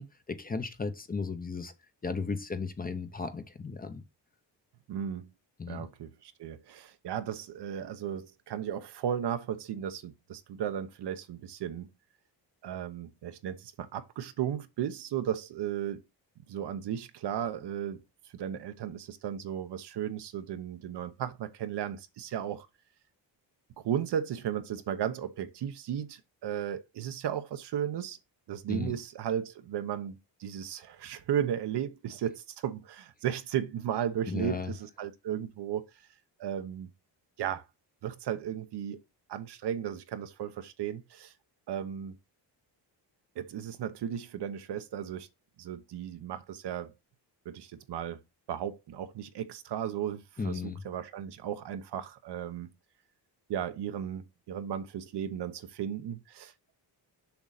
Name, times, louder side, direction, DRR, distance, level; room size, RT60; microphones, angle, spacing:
voice 1, 0.0-1.7 2.0-4.0 5.6-5.8 28.7-28.9 34.3-34.7 50.4-50.8, left 4 dB, 20° left, 0.9 m, -35 dB
voice 2, 4.9-5.3 5.7-11.9 12.6-16.0 16.4-18.0 18.3-22.7 23.8-28.2 28.5-36.1 36.4-36.9 37.4-37.6 38.0-39.0 39.3-41.3 41.7-42.2 43.3-45.3 45.6-46.9 47.4-48.2 48.5-52.7 53.5-56.7, right 9 dB, 65° right, 1.0 m, -35 dB
7.1 x 6.3 x 4.1 m
cardioid pair, 165°, 43 cm